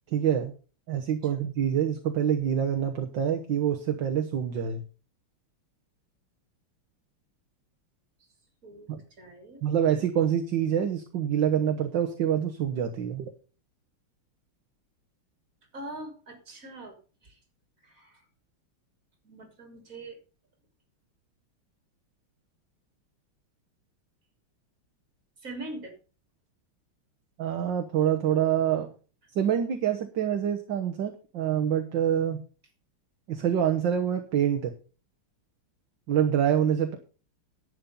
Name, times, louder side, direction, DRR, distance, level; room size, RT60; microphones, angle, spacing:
voice 1, 0.1-0.5 0.9-4.8 8.9-9.0 9.6-13.3 27.4-28.9 29.4-32.4 33.3-34.7 36.1-37.0, right 9 dB, 60° right, 5 dB, 1.8 m, -26 dB
voice 2, 9.2-9.7 15.7-17.4 17.8-18.3 19.2-20.2 25.4-26.0, right 2 dB, 35° right, 4 dB, 3.6 m, -43 dB
11.0 x 8.6 x 5.5 m, 0.36 s
omnidirectional pair, 2.4 m